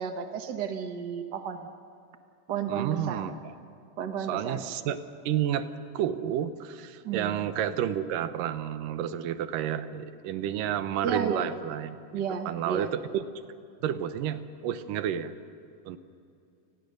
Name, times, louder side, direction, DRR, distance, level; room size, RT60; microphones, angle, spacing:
voice 1, 0.0-1.7 2.5-3.2 4.0-4.6 7.0-7.4 11.0-11.5 12.1-12.9, right 7 dB, 70° right, 6 dB, 1.0 m, -32 dB
voice 2, 2.7-3.5 4.3-5.0 5.3-5.7 5.9-12.0 12.5-13.3 13.8-15.4 15.9-16.0, right 10 dB, 85° right, 11 dB, 2.6 m, -30 dB
29.5 x 20.5 x 6.5 m, 2.6 s
omnidirectional pair, 3.8 m